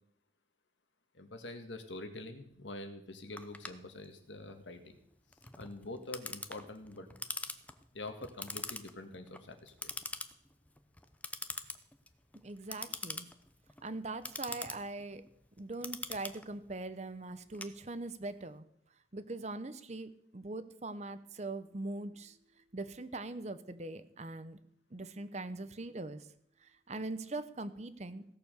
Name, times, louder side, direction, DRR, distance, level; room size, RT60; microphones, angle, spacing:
voice 1, 1.1-5.0 5.6-7.3 7.9-9.9, left 2 dB, 90° left, 7 dB, 1.8 m, -46 dB
Clock, 3.4-18.3, left 3 dB, 10° left, 0.6 m, -44 dB
voice 2, 12.4-13.3 13.8-15.2 15.6-18.6 19.1-24.6 24.9-26.3 26.6-28.2, right 2 dB, 40° right, 12 dB, 0.8 m, -42 dB
16.5 x 6.9 x 6.8 m, 0.72 s
head